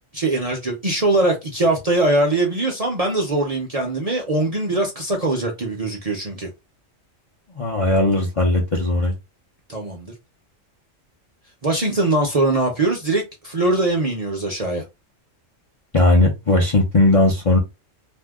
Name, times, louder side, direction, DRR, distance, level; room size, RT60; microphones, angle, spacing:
voice 1, 0.1-6.5 9.7-10.1 11.6-14.8, right 2 dB, 40° right, 0.6 m, -21 dB
voice 2, 7.5-9.1 15.9-17.6, left 1 dB, 35° left, 0.5 m, -17 dB
2.7 x 2.2 x 3.4 m
omnidirectional pair, 1.4 m